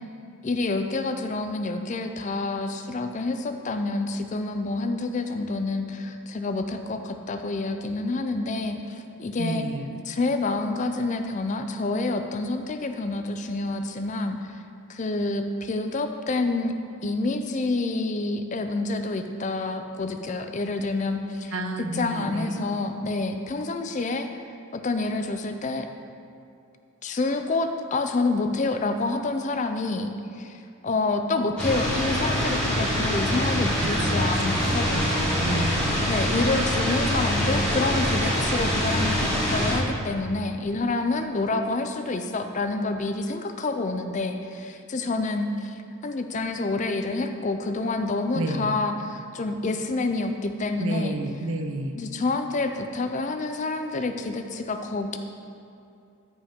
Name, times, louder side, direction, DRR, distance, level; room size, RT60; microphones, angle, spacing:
voice 1, 0.4-9.7 10.1-14.6 14.9-16.7 17.0-21.5 21.9-24.3 24.7-25.9 27.0-35.7 36.1-51.2 51.9-55.2, left 3 dB, 35° left, 7 dB, 0.4 m, -28 dB
voice 2, 9.4-10.0 21.5-22.7 33.8-36.1 48.3-48.8 50.8-52.0, right 1 dB, 65° right, 6 dB, 0.6 m, -31 dB
sound 1, 31.6-39.7, equal, 5° left, 1.9 m, -24 dB
14.0 x 5.2 x 3.6 m, 2.6 s
head